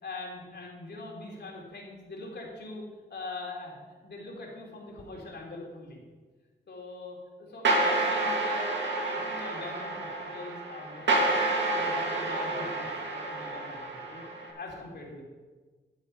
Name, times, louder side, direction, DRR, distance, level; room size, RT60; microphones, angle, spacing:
voice 1, 0.0-2.8 3.1-6.0 6.7-14.2 14.5-15.2, left 2 dB, 65° left, -1 dB, 3.0 m, -42 dB
sound 1, 7.6-14.5, right 2 dB, 75° right, 2.2 m, -29 dB
11.5 x 7.1 x 5.4 m, 1.4 s
cardioid pair, 65°, 19 cm